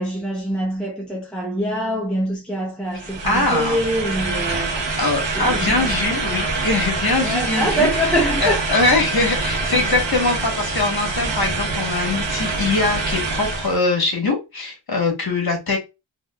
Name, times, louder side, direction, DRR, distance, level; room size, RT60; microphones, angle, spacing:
voice 1, 0.0-4.8 5.3-6.0 7.2-8.7, right 1 dB, ahead, 0.7 m, -24 dB
sound 1, 2.9-13.8, right 3 dB, 65° right, 1.0 m, -25 dB
voice 2, 3.2-3.8 5.0-7.9 8.4-15.8, left 3 dB, 50° left, 1.3 m, -22 dB
3.5 x 2.6 x 2.3 m
wide cardioid pair, 50°, 47 cm